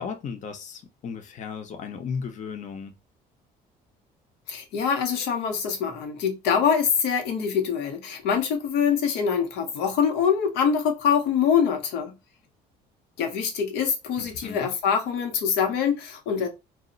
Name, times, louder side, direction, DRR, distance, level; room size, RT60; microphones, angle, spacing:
voice 1, 0.0-3.0 14.2-14.7, left 6 dB, 45° left, 0.6 m, -35 dB
voice 2, 4.5-12.1 13.2-16.5, left 7 dB, 90° left, 0.8 m, -24 dB
2.1 x 2.1 x 3.7 m
cardioid pair, 110°, 17 cm